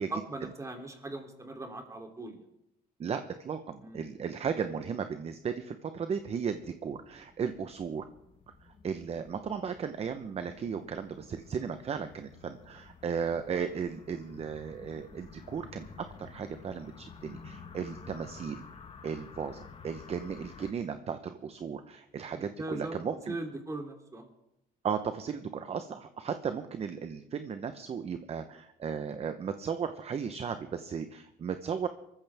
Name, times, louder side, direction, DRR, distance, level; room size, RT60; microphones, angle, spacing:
voice 1, 0.0-2.4 3.8-4.0 22.3-22.9 23.3-24.3, right 2 dB, 20° right, 2 dB, 3.2 m, -39 dB
voice 2, 3.0-8.1 8.8-18.6 19.0-23.4 24.8-31.9, right 6 dB, 35° right, 9 dB, 1.0 m, -35 dB
sound 1, 6.6-20.7, left 5 dB, 35° left, 1.5 m, -51 dB
23.5 x 14.5 x 3.6 m, 0.81 s
cardioid pair, 110°, 17 cm